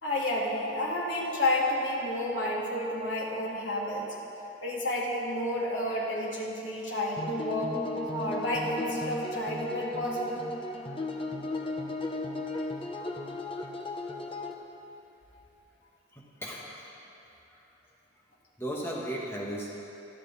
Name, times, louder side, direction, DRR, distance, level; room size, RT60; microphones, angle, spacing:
voice 1, 0.0-4.1 4.6-7.8 8.1-10.4, left 1 dB, 80° left, -4 dB, 3.2 m, -30 dB
sound 1, 7.2-14.5, left 2 dB, 30° left, 1.1 m, -35 dB
voice 2, 16.1-16.9 17.2-17.9 18.6-19.7, right 1 dB, 15° left, -4 dB, 1.7 m, -37 dB
26.5 x 11.5 x 4.3 m, 2.9 s
head